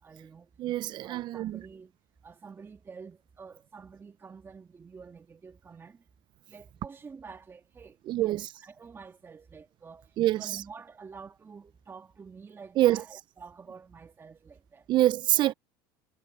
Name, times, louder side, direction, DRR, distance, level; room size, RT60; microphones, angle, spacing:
voice 1, 0.0-0.5 0.7-1.9 2.2-6.0 6.5-14.9 15.4-15.5, right 5 dB, 25° right, 1.8 m, -48 dB
voice 2, 0.6-1.6 8.1-8.5 10.2-10.4 12.8-13.0 14.9-15.5, right 14 dB, 50° right, 0.7 m, -25 dB
supercardioid pair, 95°, 10 cm